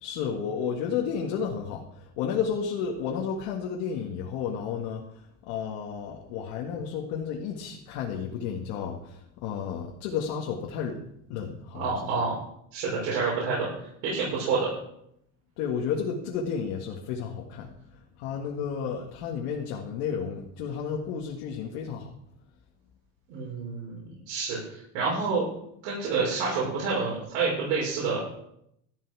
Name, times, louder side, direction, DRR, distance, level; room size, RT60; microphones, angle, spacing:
voice 1, 0.0-5.0 5.5-11.0 11.3-11.9 15.6-17.7 18.2-22.1, left 7 dB, 75° left, 0 dB, 1.9 m, -32 dB
voice 2, 11.7-12.4 12.7-13.7 14.0-14.7 23.3-25.5 25.8-28.2, right 4 dB, 85° right, -6 dB, 6.1 m, -28 dB
13.5 x 11.5 x 4.8 m, 0.75 s
cardioid pair, 175°, 32 cm